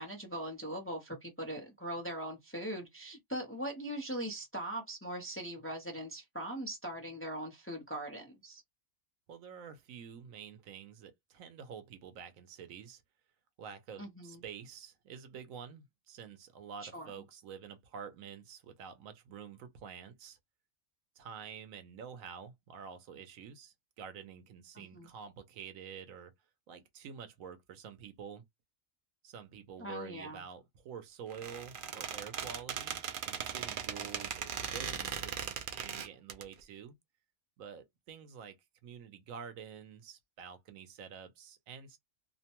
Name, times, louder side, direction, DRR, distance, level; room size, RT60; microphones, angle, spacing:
voice 1, 0.0-8.6 14.0-14.4 16.9-17.1 24.7-25.1 29.8-30.4, right 1 dB, 15° left, 0.5 m, -40 dB
voice 2, 9.3-13.0 13.6-20.4 21.2-26.3 26.7-28.4 29.2-37.0 37.6-38.6 38.8-42.0, right 7 dB, 80° right, 1.1 m, -48 dB
Squeak, 31.3-36.4, right 7 dB, 65° right, 0.5 m, -39 dB
2.8 x 2.1 x 2.9 m
omnidirectional pair, 1.4 m